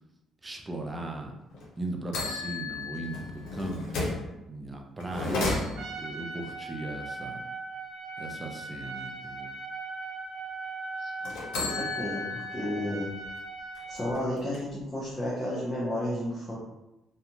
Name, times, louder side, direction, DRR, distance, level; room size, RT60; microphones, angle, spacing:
voice 1, 0.4-1.3 1.8-4.2 4.5-7.4 8.2-9.5, right 2 dB, 20° right, 2 dB, 0.5 m, -38 dB
sound 1, 1.5-1.6 2.1-4.3 5.0-6.1 11.2-12.8 13.2-13.3 13.7-14.8, left 3 dB, 80° left, 0.7 m, -33 dB
Trumpet, 5.8-14.2, right 3 dB, 70° right, 0.7 m, -39 dB
voice 2, 11.6-13.1 13.9-16.5, left 1 dB, 25° left, -7 dB, 0.7 m, -32 dB
2.4 x 2.2 x 2.9 m, 0.95 s
cardioid pair, 95°, 0 cm